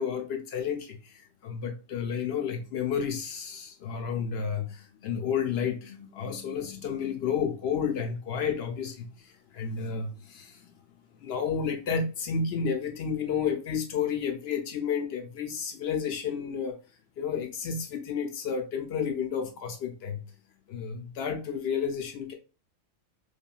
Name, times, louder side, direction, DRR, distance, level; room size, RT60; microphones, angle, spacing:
voice 1, 0.0-10.7 11.2-16.8 17.2-20.2 20.7-22.3, left 6 dB, 65° left, 0.6 m, -31 dB
3.4 x 2.3 x 2.2 m
omnidirectional pair, 1.4 m